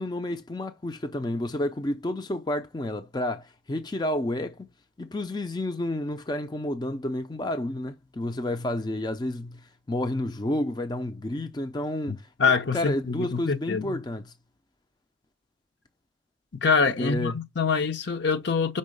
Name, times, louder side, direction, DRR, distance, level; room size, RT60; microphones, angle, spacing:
voice 1, 0.0-4.7 5.0-14.3 17.0-17.4, left 1 dB, 20° left, 0.4 m, -30 dB
voice 2, 12.1-14.0 16.6-18.8, left 5 dB, 60° left, 0.7 m, -25 dB
5.4 x 3.8 x 5.2 m
head